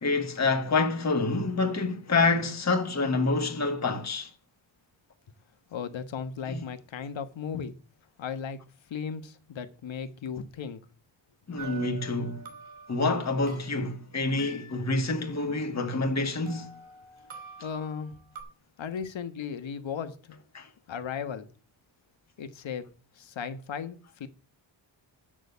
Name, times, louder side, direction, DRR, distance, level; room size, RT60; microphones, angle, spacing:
voice 1, 0.0-4.3 6.5-6.6 11.5-12.4 12.9-16.7 20.5-20.7, left 3 dB, 35° left, 1.7 m, -27 dB
voice 2, 5.7-7.7 8.2-8.6 8.9-10.8 17.6-18.3 18.8-20.4 20.9-21.5 22.4-22.9 23.2-24.3, left 6 dB, 75° left, 1.4 m, -36 dB
sound 1, 11.6-13.8 14.4-16.1 16.5-18.4, right 4 dB, 45° right, 3.0 m, -47 dB
9.0 x 6.5 x 6.7 m
wide cardioid pair, 135°, 46 cm